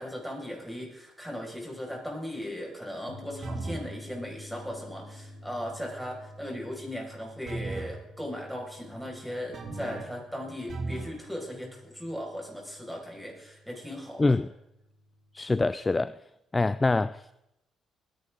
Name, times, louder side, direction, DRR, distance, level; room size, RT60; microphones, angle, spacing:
voice 1, 0.0-14.4, equal, ahead, 5.8 m, -38 dB
sound 1, 3.1-16.0, left 1 dB, 85° left, 2.6 m, -50 dB
sound 2, 3.4-3.9 7.5-8.0 9.5-10.2 10.7-11.2, right 3 dB, 55° right, 2.5 m, -36 dB
voice 2, 15.3-16.1 16.5-17.3, left 3 dB, 20° left, 0.4 m, -25 dB
21.0 x 10.5 x 3.8 m
cardioid pair, 90°, 0 cm